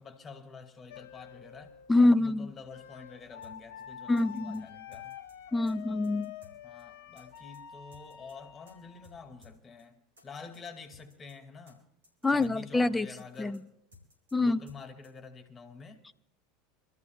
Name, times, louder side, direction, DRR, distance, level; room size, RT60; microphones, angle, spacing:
voice 1, 0.0-5.2 6.6-11.9 12.3-13.6 14.4-16.0, left 5 dB, 30° left, 2.2 m, -48 dB
sound 1, 0.9-9.5, left 9 dB, 65° left, 1.0 m, -48 dB
voice 2, 1.9-2.5 4.1-4.7 5.5-6.3 12.2-13.1 13.4-13.6 14.3-14.6, left 2 dB, 10° left, 0.5 m, -25 dB
sound 2, 3.4-3.5 3.8-3.9 4.2-4.6 4.9-5.3 5.7-5.8 6.0-6.5 6.8-6.9 7.2-7.6 7.9-8.3 8.7-8.8 9.0-9.2 9.4-9.5 9.8-9.9 10.2-10.6 10.9-11.3 11.7-11.8 12.0-12.5 12.8-12.9 13.2-13.6 13.9-14.3 14.7-14.8 15.0-15.1, left 2 dB, 85° right, 5.8 m, -57 dB
27.0 x 13.5 x 2.4 m
hypercardioid pair, 80°, 0 cm